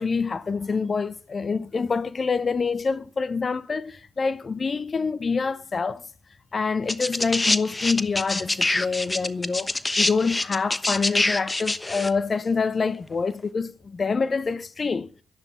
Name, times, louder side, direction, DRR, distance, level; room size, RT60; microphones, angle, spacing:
voice 1, 0.0-6.0 6.5-15.1, left 4 dB, 45° left, 0.9 m, -26 dB
sound 1, 6.9-12.1 13.1-13.2, left 2 dB, 20° left, 1.1 m, -25 dB
12.5 x 11.0 x 7.1 m
hypercardioid pair, 45°, 0 cm